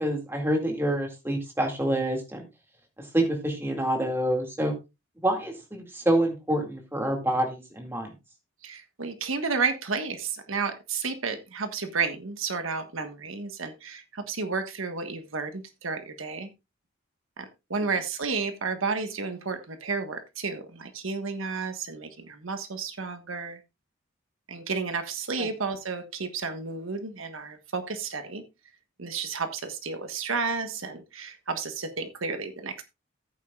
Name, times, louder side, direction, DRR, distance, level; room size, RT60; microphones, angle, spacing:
voice 1, 0.0-2.5 3.0-4.7 5.2-8.1 25.4-25.5, right 1 dB, 10° right, 3 dB, 2.1 m, -27 dB
voice 2, 8.6-16.5 17.4-23.6 24.5-28.4 29.0-32.8, right 4 dB, 75° right, 8 dB, 1.4 m, -32 dB
15.0 x 8.8 x 2.4 m, 0.25 s
head